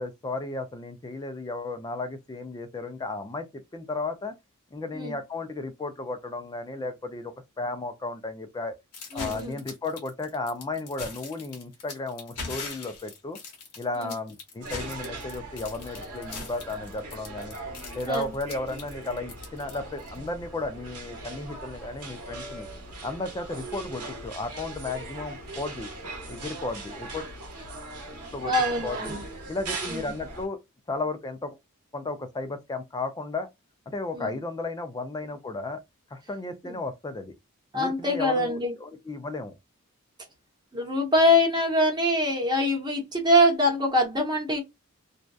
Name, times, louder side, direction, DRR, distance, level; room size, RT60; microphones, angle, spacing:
voice 1, 0.0-4.3 4.7-8.7 9.1-13.4 13.8-17.6 17.9-22.7 23.0-27.3 28.3-28.5 28.8-29.1 29.5-30.6 30.9-31.6 31.9-33.5 33.9-35.8 36.1-37.4 37.7-39.5, left 2 dB, 20° left, 0.3 m, -34 dB
sound 1, 8.9-20.2, left 4 dB, 80° left, 1.0 m, -40 dB
voice 2, 9.1-9.6 14.0-14.1 18.1-18.3 28.5-29.2 29.9-30.1 34.1-34.4 36.6-36.8 37.7-38.7 40.7-44.6, left 1 dB, 20° right, 0.8 m, -24 dB
sound 2, 14.6-30.5, right 3 dB, 80° right, 0.8 m, -39 dB
2.6 x 2.2 x 2.2 m
head